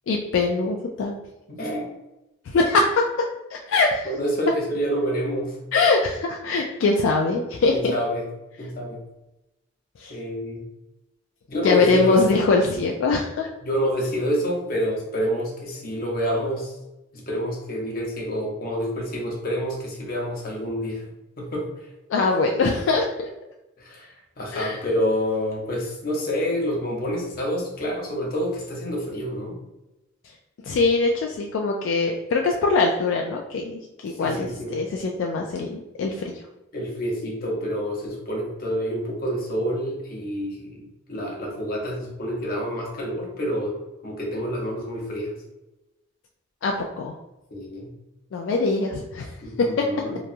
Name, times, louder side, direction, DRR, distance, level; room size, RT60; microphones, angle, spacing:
voice 1, 0.1-1.2 2.5-3.1 3.5-4.0 5.7-7.9 10.0-10.1 11.6-13.5 22.1-23.3 24.5-24.8 30.7-36.4 46.6-47.1 48.3-49.3 49.6-49.8, left 3 dB, 75° left, 1 dB, 0.3 m, -22 dB
voice 2, 1.5-1.9 4.0-5.6 7.7-8.3 8.6-9.0 10.1-10.6 11.5-12.4 13.6-16.8 17.1-21.0 21.4-21.9 23.8-29.6 34.1-34.7 36.7-43.8 44.0-45.3 47.5-47.9 49.4-50.2, equal, 50° left, -1 dB, 0.8 m, -28 dB
2.9 x 2.3 x 2.5 m, 0.96 s
head